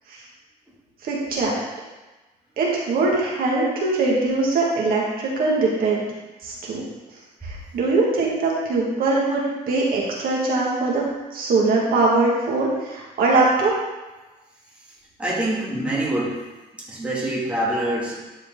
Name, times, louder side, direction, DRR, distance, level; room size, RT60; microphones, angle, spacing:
voice 1, 1.0-1.6 2.6-6.0 6.4-6.8 7.4-11.1 11.3-13.7, right 3 dB, 60° right, -4 dB, 2.1 m, -21 dB
voice 2, 15.2-16.4 16.7-18.2, right 1 dB, 5° right, -6 dB, 2.4 m, -25 dB
12.0 x 4.7 x 3.9 m, 1.1 s
cardioid pair, 110°, 17 cm